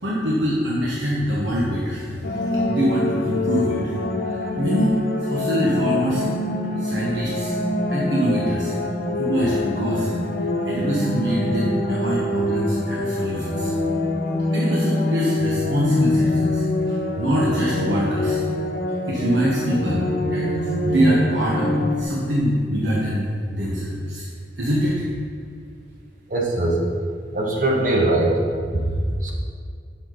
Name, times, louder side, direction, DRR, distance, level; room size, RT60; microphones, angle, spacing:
voice 1, 0.0-2.4 2.7-3.8 4.2-6.3 6.8-7.6 7.9-8.7 9.3-10.1 10.6-13.7 14.5-18.4 19.0-23.3 23.5-24.3 24.6-25.0, equal, 85° right, -5 dB, 1.2 m, -24 dB
sound 1, 2.2-22.0, left 1 dB, 55° left, 0.9 m, -24 dB
voice 2, 26.3-26.8 27.3-28.4 28.7-28.9 29.2-29.3, right 2 dB, 50° right, -1 dB, 1.3 m, -21 dB
9.2 x 6.0 x 3.9 m, 2.1 s
head